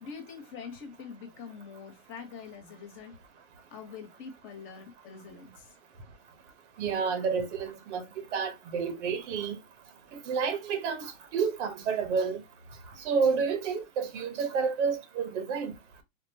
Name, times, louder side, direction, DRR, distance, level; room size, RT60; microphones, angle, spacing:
voice 1, 0.0-3.1 3.7-5.7, left 6 dB, 35° left, 1.1 m, -44 dB
voice 2, 6.8-8.0 8.3-9.5 10.3-12.4 13.0-15.7, right 5 dB, 70° right, 1.1 m, -29 dB
4.1 x 2.2 x 2.8 m
supercardioid pair, 140°, 36 cm